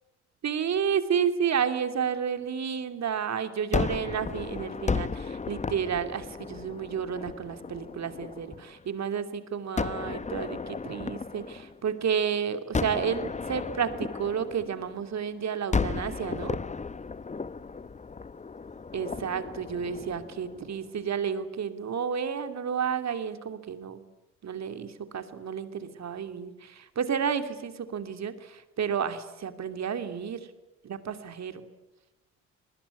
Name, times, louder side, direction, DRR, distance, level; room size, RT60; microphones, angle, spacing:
voice 1, 0.4-16.6 18.9-24.0 24.4-30.5 30.8-31.6, right 7 dB, 50° right, 9 dB, 2.8 m, -31 dB
Gunshot gunfire, 3.7-8.8 9.8-12.2 12.7-15.2 15.7-20.9, left 4 dB, 20° left, 0.9 m, -34 dB
29.0 x 20.5 x 9.7 m, 1.0 s
hypercardioid pair, 50°, 35 cm